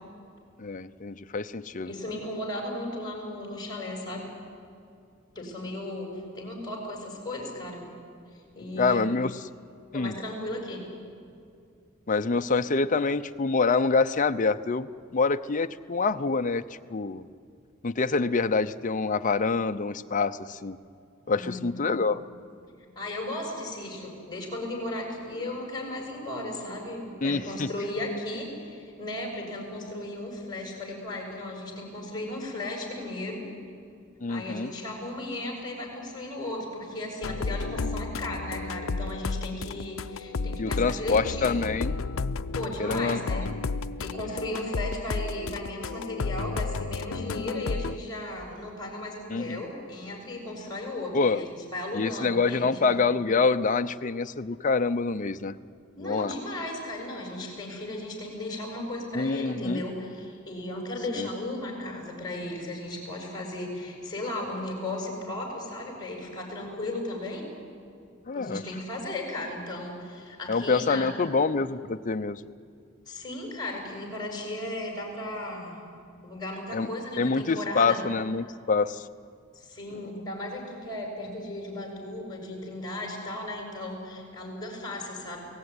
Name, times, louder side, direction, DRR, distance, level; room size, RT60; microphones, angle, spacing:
voice 1, 0.6-1.9 8.8-9.3 9.9-10.1 12.1-17.2 17.8-20.8 21.3-22.2 27.2-27.7 34.2-34.7 40.6-42.0 42.8-43.5 49.3-49.6 51.1-51.4 51.9-55.5 56.0-56.3 59.1-59.8 61.2-61.3 68.3-68.6 70.5-72.4 76.7-76.9 77.2-79.0, left 4 dB, 40° left, 9 dB, 0.6 m, -26 dB
voice 2, 1.8-4.3 5.3-7.8 8.5-9.0 9.9-10.8 21.3-21.8 22.9-33.4 34.3-41.6 42.5-43.5 44.0-52.8 56.0-67.5 68.3-71.1 73.1-75.8 76.2-78.0 79.5-85.5, left 1 dB, 20° left, 0 dB, 6.7 m, -35 dB
sound 1, 37.2-48.0, left 4 dB, 75° left, 0.6 m, -32 dB
29.0 x 18.5 x 9.7 m, 2.4 s
head